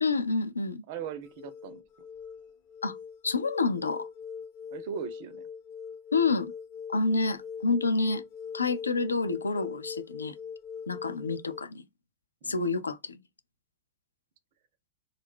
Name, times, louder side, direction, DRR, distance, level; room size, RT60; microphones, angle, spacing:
voice 1, 0.0-0.8 2.8-3.0 3.2-4.1 6.1-6.5 6.9-8.2 8.5-10.4 10.9-11.8 12.5-13.2, left 3 dB, 75° left, 0.3 m, -28 dB
voice 2, 0.9-1.8 4.7-5.4 11.0-11.2 12.4-12.6, right 7 dB, 50° right, 0.4 m, -39 dB
sound 1, 1.0-11.6, left 6 dB, 45° left, 0.7 m, -42 dB
2.4 x 2.1 x 3.5 m
figure-of-eight pair, 90°, 0 cm